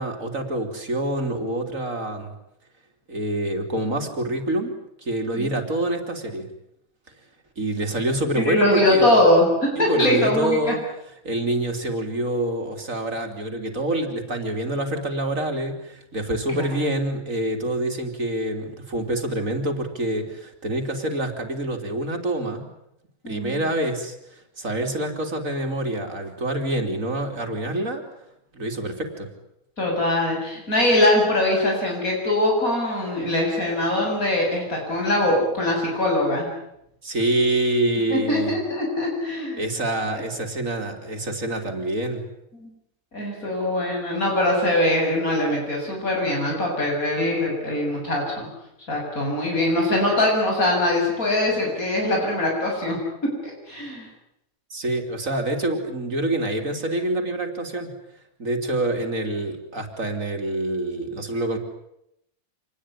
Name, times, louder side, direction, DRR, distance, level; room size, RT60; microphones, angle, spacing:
voice 1, 0.0-2.3 3.1-4.7 5.0-6.5 7.6-9.2 9.8-10.8 11.2-22.7 23.3-24.2 24.6-28.0 28.5-29.3 37.0-38.6 39.5-42.2 54.7-57.9 58.4-61.6, right 1 dB, 70° right, 5 dB, 3.8 m, -26 dB
voice 2, 8.4-10.7 16.5-16.6 23.2-23.7 29.8-36.5 38.1-39.6 40.1-40.2 42.6-42.7 43.1-48.5 48.9-54.1, left 1 dB, 85° left, -1 dB, 8.2 m, -22 dB
27.0 x 20.0 x 10.0 m, 0.81 s
omnidirectional pair, 1.4 m